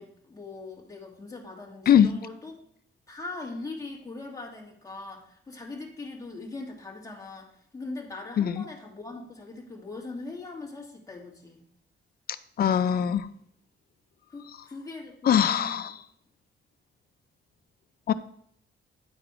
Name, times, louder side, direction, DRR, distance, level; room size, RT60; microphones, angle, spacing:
voice 1, 0.0-2.5 3.1-11.7 14.3-15.9, left 3 dB, 15° left, -1 dB, 1.8 m, -41 dB
voice 2, 12.6-13.3 15.2-15.9 18.1-18.2, left 9 dB, 50° left, 13 dB, 0.5 m, -21 dB
10.0 x 4.9 x 4.8 m, 0.67 s
wide cardioid pair, 175°, 20 cm